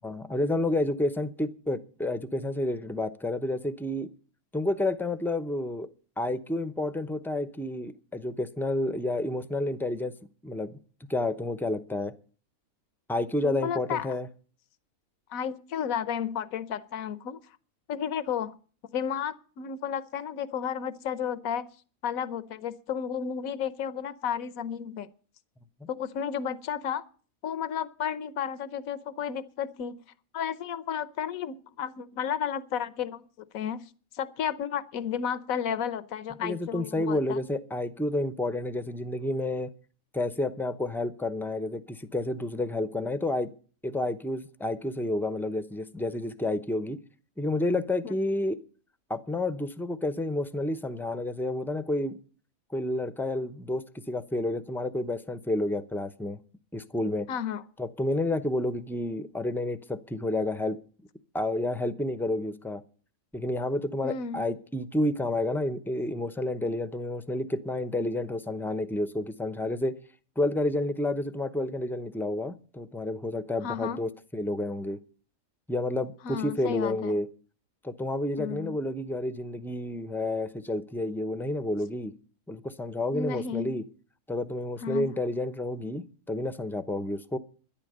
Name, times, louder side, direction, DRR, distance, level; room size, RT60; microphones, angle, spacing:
voice 1, 0.0-4.1 4.5-5.9 6.2-10.1 10.4-10.8 11.1-12.1 13.1-14.3 36.4-39.7 40.1-43.5 43.8-47.0 47.4-48.6 49.1-52.2 52.7-56.4 56.7-57.3 57.8-60.8 61.3-62.8 63.3-70.0 70.4-75.0 75.7-77.3 77.8-82.1 82.5-83.8 84.3-87.4, left 1 dB, ahead, 0.5 m, -30 dB
voice 2, 13.4-14.1 15.3-17.4 17.9-18.6 18.9-21.7 22.0-25.1 25.9-27.0 27.4-30.0 30.3-33.2 33.5-37.4 48.0-48.1 57.3-57.6 64.0-64.5 73.6-74.0 76.2-77.2 78.4-78.8 83.1-83.8 84.8-85.1, left 8 dB, 75° left, 1.3 m, -32 dB
12.5 x 11.0 x 6.7 m
omnidirectional pair, 1.5 m